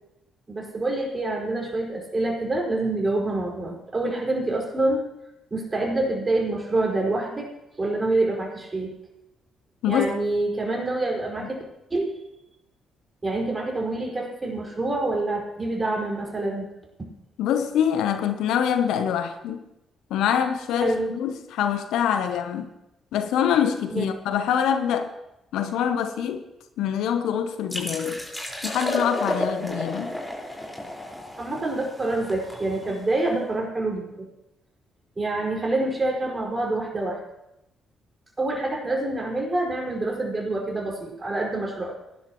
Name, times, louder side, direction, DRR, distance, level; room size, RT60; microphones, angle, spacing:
voice 1, 0.5-5.1 5.5-7.5 7.8-8.9 9.9-11.6 11.9-12.1 13.2-16.7 20.8-21.1 23.9-24.1 31.4-34.3 35.2-37.2 38.4-42.0, right 2 dB, 30° right, 5.2 m, -26 dB
voice 2, 17.4-19.6 20.1-22.7 23.1-25.1 25.5-26.4 26.8-28.2 28.6-30.2, left 8 dB, 75° left, 0.8 m, -25 dB
sound 1, 27.7-33.2, left 1 dB, 5° left, 4.9 m, -32 dB
20.0 x 11.5 x 3.1 m
hypercardioid pair, 45°, 0 cm